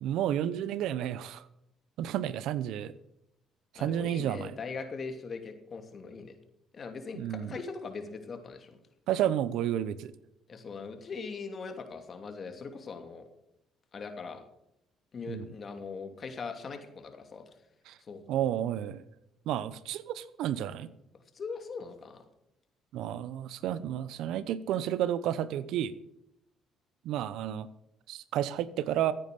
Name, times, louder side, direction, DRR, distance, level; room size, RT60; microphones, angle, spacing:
voice 1, 0.0-1.4 2.0-2.9 3.7-4.5 7.1-7.5 9.1-10.1 15.3-15.5 17.9-18.0 18.3-19.0 19.5-20.9 22.9-25.9 27.0-27.7 28.1-29.1, right 11 dB, 75° right, 16 dB, 0.8 m, -31 dB
voice 2, 3.7-6.3 6.7-8.8 10.5-13.2 13.9-14.4 15.1-17.4 18.1-18.2 21.3-22.2, left 4 dB, 45° left, 6 dB, 2.8 m, -40 dB
15.0 x 9.5 x 6.8 m, 0.82 s
supercardioid pair, 65°, 0 cm